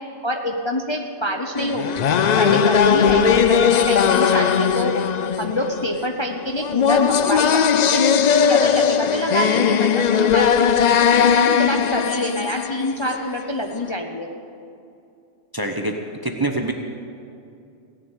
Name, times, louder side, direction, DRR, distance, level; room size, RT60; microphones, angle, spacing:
voice 1, 0.2-2.0 2.4-4.9 5.4-8.0 8.5-10.7 11.0-14.3, equal, 25° left, 2 dB, 0.7 m, -26 dB
sound 1, 1.6-13.4, left 7 dB, 65° left, 0.4 m, -18 dB
voice 2, 15.5-15.9 16.2-16.7, right 2 dB, 20° right, 3 dB, 0.8 m, -24 dB
17.0 x 7.0 x 9.0 m, 2.5 s
omnidirectional pair, 1.3 m